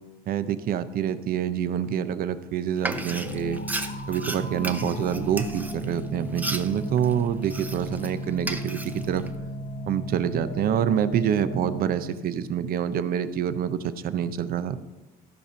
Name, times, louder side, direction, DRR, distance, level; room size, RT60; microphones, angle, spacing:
voice 1, 0.3-3.6 4.1-9.3 9.9-13.8 14.0-14.8, right 9 dB, 60° right, 13 dB, 0.7 m, -26 dB
Frying (food), 2.8-8.1 8.4-9.3, right 2 dB, 10° right, 0.7 m, -35 dB
sound 1, 2.9-12.2, equal, 50° left, 1.3 m, -35 dB
13.5 x 5.2 x 5.6 m, 1.1 s
cardioid pair, 110°, 17 cm